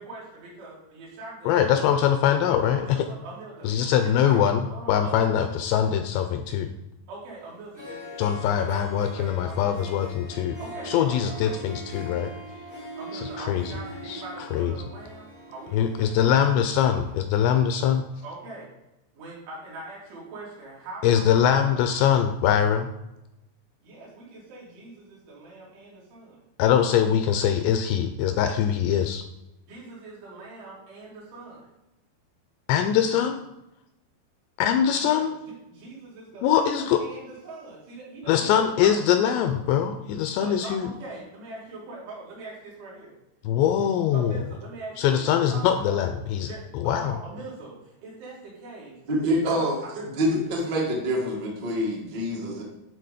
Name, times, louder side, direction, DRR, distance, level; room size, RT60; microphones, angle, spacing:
voice 1, 0.0-2.0 2.4-3.7 4.0-5.5 7.1-10.0 10.6-11.6 12.9-16.5 18.2-18.7 19.2-21.8 23.8-26.4 29.7-31.7 35.0-35.2 35.7-39.0 40.4-43.2 44.1-46.1 46.4-49.0 49.3-49.9, right 2 dB, 80° right, -6 dB, 5.2 m, -42 dB
voice 2, 1.5-2.9 3.6-4.6 4.9-6.7 8.2-10.6 10.9-12.3 13.4-13.7 14.1-14.2 14.5-14.7 15.7-18.1 21.0-22.9 26.6-29.2 32.7-33.4 34.6-35.3 36.4-37.0 38.3-40.9 43.4-44.3 45.0-46.5 46.7-47.2, left 9 dB, 85° left, 7 dB, 2.5 m, -22 dB
Harp, 7.5-7.6 7.7-17.3, right 1 dB, 15° left, 0.8 m, -42 dB
voice 3, 49.1-52.6, equal, 55° right, -3 dB, 1.1 m, -26 dB
11.0 x 4.0 x 5.0 m, 0.92 s
omnidirectional pair, 5.3 m